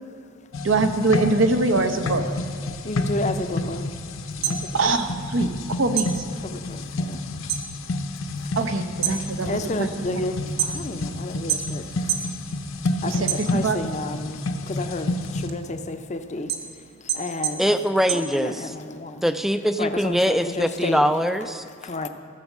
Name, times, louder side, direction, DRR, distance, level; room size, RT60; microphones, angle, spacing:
sound 1, 0.5-15.5, left 2 dB, 75° left, 0.7 m, -30 dB
voice 1, 0.6-2.2 4.7-6.1 8.6-10.2 13.0-13.3 13.5-13.8, right 3 dB, 70° right, 6 dB, 0.8 m, -23 dB
voice 2, 2.8-3.9 4.4-4.7 5.9-6.0 6.4-7.5 8.4-8.5 9.1-12.4 13.0-17.8 18.1-19.2 19.8-21.1 21.6-22.1, left 2 dB, 35° left, 8 dB, 0.6 m, -32 dB
sound 2, 4.2-5.6 5.9-7.7 8.0-8.5 8.9-11.1 11.5-12.3 12.7-13.9 14.4-18.9, right 9 dB, 50° right, 1.1 m, -29 dB
voice 3, 17.6-18.6 19.2-21.6, equal, ahead, 10 dB, 0.4 m, -22 dB
15.0 x 6.3 x 7.2 m, 2.1 s
head